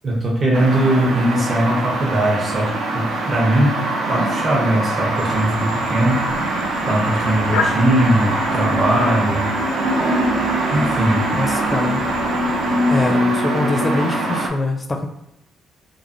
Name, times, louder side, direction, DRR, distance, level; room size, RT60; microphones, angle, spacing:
voice 1, 0.0-6.3 6.9-9.5 10.7-11.3, right 1 dB, 40° right, -3 dB, 0.7 m, -20 dB
sound 1, 0.5-14.5, right 1 dB, 75° right, 0.5 m, -22 dB
sound 2, 5.2-13.1, left 4 dB, 90° left, 0.4 m, -33 dB
voice 2, 11.3-12.1 12.9-15.1, left 2 dB, 25° left, 4 dB, 0.4 m, -23 dB
3.1 x 2.1 x 2.5 m, 0.82 s
cardioid pair, 90°, 0 cm